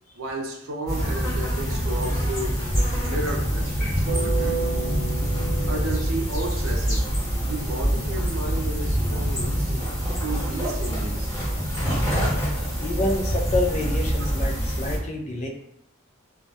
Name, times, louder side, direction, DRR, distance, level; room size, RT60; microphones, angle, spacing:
voice 1, 0.1-2.6 2.9-4.7 5.7-7.0 7.4-9.8 10.2-11.3, right 2 dB, 90° right, 2 dB, 0.5 m, -33 dB
sound 1, 0.9-15.0, equal, 20° left, 1.1 m, -25 dB
sound 2, 4.1-7.1, right 3 dB, 35° right, 0.4 m, -32 dB
voice 2, 12.8-15.5, left 2 dB, 35° left, 1 dB, 0.4 m, -27 dB
2.3 x 2.1 x 2.6 m, 0.74 s
head